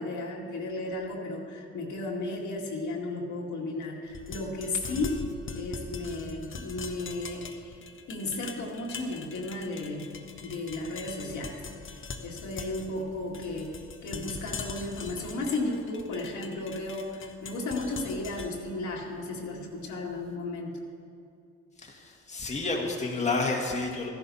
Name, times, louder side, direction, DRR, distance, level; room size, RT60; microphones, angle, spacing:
voice 1, 0.0-5.2 5.5-7.8 8.1-10.1 10.4-20.8, left 2 dB, 75° left, -1 dB, 2.0 m, -34 dB
sound 1, 4.1-20.1, left 4 dB, 40° left, 1.0 m, -42 dB
voice 2, 21.8-24.1, left 3 dB, 20° left, -1 dB, 1.6 m, -30 dB
14.0 x 11.0 x 4.1 m, 2.5 s
cardioid pair, 90°, 30 cm